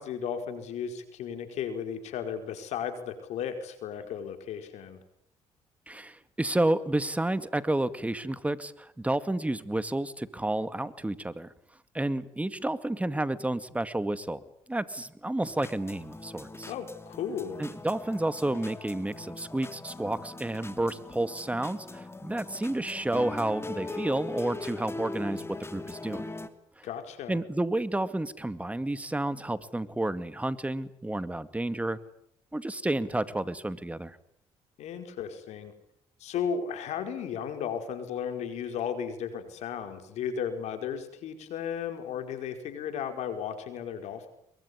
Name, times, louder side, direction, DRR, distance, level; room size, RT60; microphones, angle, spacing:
voice 1, 0.0-5.0 16.7-17.6 26.8-27.4 34.8-35.7 36.2-44.3, left 7 dB, 75° left, 7 dB, 5.0 m, -35 dB
voice 2, 5.9-11.5 11.9-14.4 14.7-16.7 17.6-26.3 26.8-26.9 27.3-32.0 32.5-34.2, right 1 dB, 10° right, 13 dB, 2.2 m, -30 dB
sound 1, 15.4-26.5, left 3 dB, 20° left, 2.9 m, -41 dB
23.5 x 23.0 x 9.9 m, 0.73 s
supercardioid pair, 70°, 12 cm